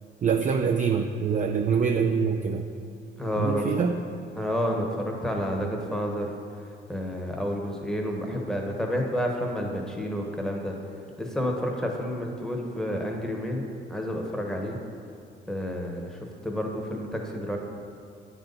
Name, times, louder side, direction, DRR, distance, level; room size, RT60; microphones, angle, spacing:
voice 1, 0.2-2.6 3.4-4.0, right 6 dB, 40° right, 4 dB, 0.4 m, -25 dB
voice 2, 3.2-3.6 4.4-6.3 6.9-10.7 11.2-14.8 15.5-17.6, equal, 5° left, 0 dB, 1.1 m, -30 dB
8.7 x 4.1 x 5.4 m, 2.3 s
cardioid pair, 90°, 20 cm